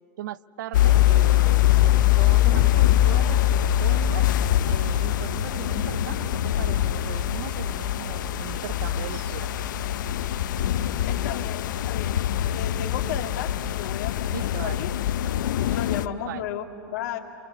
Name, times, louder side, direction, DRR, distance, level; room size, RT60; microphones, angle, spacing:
voice 1, 0.2-4.3 4.7-9.5 14.3-14.9 15.7-15.8 16.2-16.5, right 12 dB, 75° right, 17 dB, 0.6 m, -38 dB
sound 1, 0.7-16.1, left 13 dB, 80° left, 0.6 m, -23 dB
sound 2, 1.4-11.0, right 4 dB, 30° right, 1.1 m, -42 dB
voice 2, 11.0-14.4 14.6-14.9 15.7-17.2, left 9 dB, 60° left, 4 dB, 2.3 m, -34 dB
28.5 x 28.0 x 6.7 m, 2.9 s
supercardioid pair, 175°, 10 cm